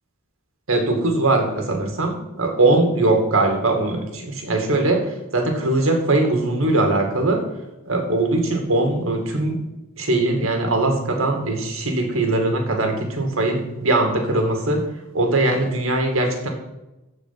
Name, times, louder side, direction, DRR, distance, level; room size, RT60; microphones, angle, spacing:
voice 1, 0.7-7.4 7.8-9.6 10.0-14.8 15.1-16.5, right 2 dB, 80° right, 3 dB, 2.4 m, -21 dB
14.0 x 4.8 x 5.9 m, 0.98 s
head